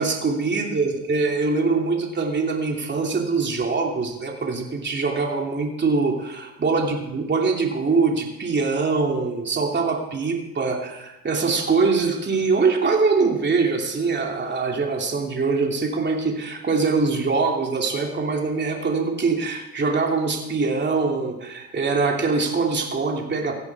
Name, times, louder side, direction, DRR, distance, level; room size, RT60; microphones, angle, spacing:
voice 1, 0.0-23.5, right 4 dB, 35° right, 1 dB, 3.0 m, -23 dB
17.5 x 14.5 x 4.9 m, 0.94 s
cardioid pair, 90°, 30 cm